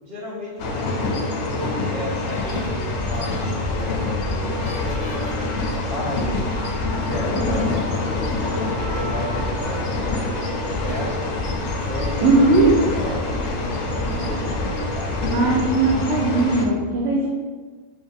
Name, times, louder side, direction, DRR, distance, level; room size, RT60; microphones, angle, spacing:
voice 1, 0.0-11.3 11.8-15.8, equal, 55° right, -6 dB, 1.3 m, -34 dB
sound 1, 0.6-16.7, left 2 dB, 70° left, 0.8 m, -26 dB
sound 2, 2.4-16.0, left 2 dB, 30° right, 0.6 m, -33 dB
sound 3, 2.4-10.8 11.6-11.9, equal, 85° right, 1.4 m, -39 dB
voice 2, 12.2-12.7 15.3-17.3, right 3 dB, 70° right, -4 dB, 0.9 m, -18 dB
5.2 x 2.7 x 2.4 m, 1.4 s
omnidirectional pair, 1.3 m